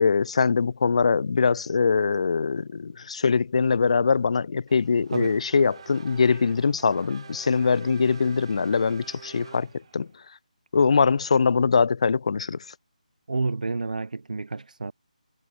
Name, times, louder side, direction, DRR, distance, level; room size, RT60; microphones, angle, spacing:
voice 1, 0.0-10.1 10.7-12.6, left 5 dB, 50° left, 0.3 m, -22 dB
Race car auto racing / Accelerating revving vroom, 4.7-10.2, right 6 dB, 40° right, 2.6 m, -46 dB
voice 2, 13.3-14.9, right 3 dB, 75° right, 2.3 m, -29 dB
figure-of-eight pair, 170°, 4 cm